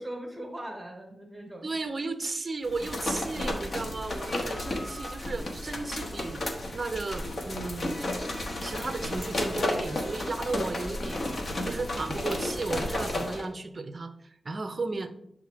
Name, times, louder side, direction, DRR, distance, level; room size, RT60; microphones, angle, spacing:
voice 1, 0.0-1.7 8.7-9.1, right 1 dB, 10° right, 1 dB, 1.1 m, -40 dB
voice 2, 1.6-6.4 6.7-8.0 8.6-15.1, right 3 dB, 35° right, 9 dB, 0.5 m, -34 dB
sound 1, 2.6-13.5, left 1 dB, 50° left, 1.0 m, -33 dB
7.2 x 3.6 x 4.9 m, 0.73 s
wide cardioid pair, 175°, 0 cm